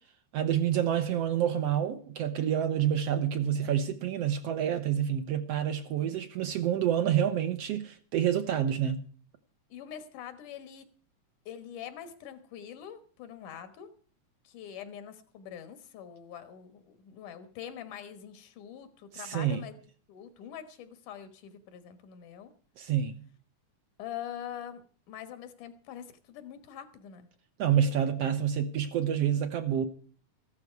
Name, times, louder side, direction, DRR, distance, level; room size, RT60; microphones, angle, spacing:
voice 1, 0.3-9.0 19.1-19.6 22.8-23.2 27.6-29.9, right 9 dB, 65° right, 1.7 m, -28 dB
voice 2, 6.0-6.3 9.7-10.9 11.5-13.9 14.4-22.5 24.0-27.3, left 9 dB, 80° left, 2.9 m, -44 dB
14.5 x 12.5 x 4.6 m
omnidirectional pair, 3.5 m